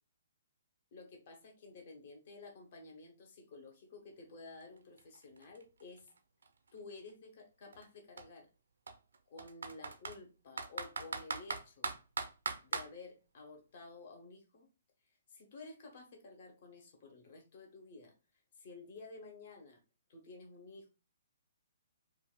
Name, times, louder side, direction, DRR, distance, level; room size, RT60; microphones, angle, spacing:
voice 1, 0.9-6.1 6.7-8.5 9.3-11.9 12.6-14.7 15.3-18.1 18.5-19.8 20.1-20.9, left 3 dB, 45° left, 2 dB, 1.1 m, -52 dB
Computer keyboard, 4.6-4.7 5.0-6.9 7.7-7.9 8.2-8.3 8.9-10.2 10.6-12.9, right 4 dB, 65° right, 0.4 m, -40 dB
4.4 x 2.4 x 2.2 m, 0.31 s
figure-of-eight pair, 125°, 0 cm